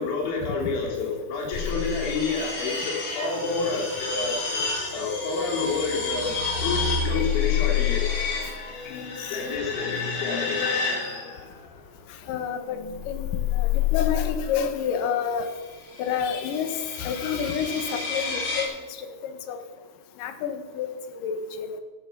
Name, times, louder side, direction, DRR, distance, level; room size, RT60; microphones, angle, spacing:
voice 1, 0.0-4.3 4.9-6.3 6.6-8.3 9.3-10.6, left 4 dB, 85° left, -2 dB, 6.0 m, -29 dB
sound 1, 1.5-11.7 12.7-14.5 15.7-18.6, left 6 dB, 50° left, 3.7 m, -29 dB
voice 2, 8.9-9.4 12.3-15.5 16.0-18.7 19.0-19.6 20.2-20.9 21.2-21.8, left 7 dB, 65° left, 8 dB, 2.3 m, -29 dB
14.0 x 12.0 x 6.9 m, 1.4 s
omnidirectional pair, 5.3 m